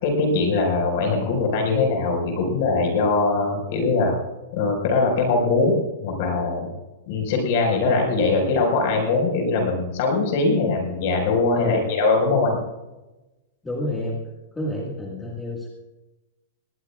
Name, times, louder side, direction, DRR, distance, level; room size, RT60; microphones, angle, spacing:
voice 1, 0.0-4.1 4.5-6.7 7.1-12.6, left 3 dB, 40° left, 2 dB, 5.1 m, -21 dB
voice 2, 11.5-11.9 13.6-14.2 14.6-15.7, left 1 dB, 5° left, -4 dB, 1.8 m, -29 dB
20.5 x 19.0 x 2.4 m, 1.0 s
supercardioid pair, 175°, 0 cm